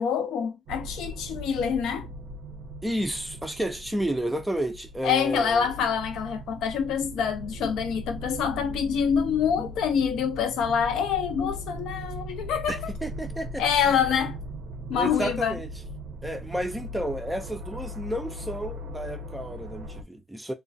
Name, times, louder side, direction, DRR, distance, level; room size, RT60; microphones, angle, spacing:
voice 1, 0.0-2.1 5.0-12.9 13.6-14.4 14.9-15.5, left 7 dB, 85° left, 0.5 m, -26 dB
sound 1, 0.7-20.0, right 1 dB, 80° right, 0.5 m, -39 dB
voice 2, 2.8-5.7 12.7-13.9 14.9-15.7 16.2-20.5, right 1 dB, 5° right, 0.4 m, -31 dB
2.3 x 2.1 x 2.5 m
cardioid pair, 90°, 0 cm